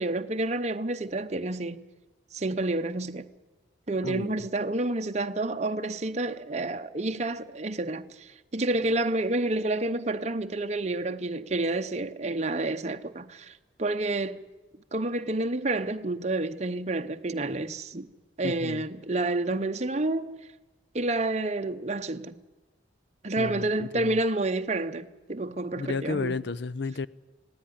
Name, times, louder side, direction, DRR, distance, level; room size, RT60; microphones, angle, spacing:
voice 1, 0.0-1.8 2.3-3.3 3.9-13.5 13.8-14.4 14.9-18.1 18.4-20.4 20.9-22.4 23.2-26.4, right 2 dB, 35° right, 0.8 m, -29 dB
voice 2, 4.0-4.5 18.4-18.8 23.4-24.2 25.8-27.1, left 4 dB, 60° left, 0.6 m, -32 dB
19.0 x 17.0 x 10.0 m
head